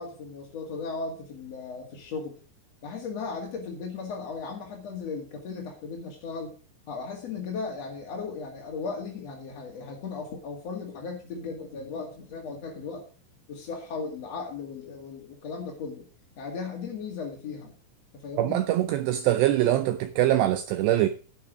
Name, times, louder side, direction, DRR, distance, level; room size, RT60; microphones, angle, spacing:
voice 1, 0.0-2.3 2.8-6.5 6.9-13.1 13.5-16.1 16.4-17.7 18.1-18.6, left 4 dB, 50° left, 2.2 m, -36 dB
voice 2, 18.4-21.1, right 13 dB, 85° right, 2.4 m, -23 dB
11.0 x 9.7 x 5.2 m
omnidirectional pair, 5.7 m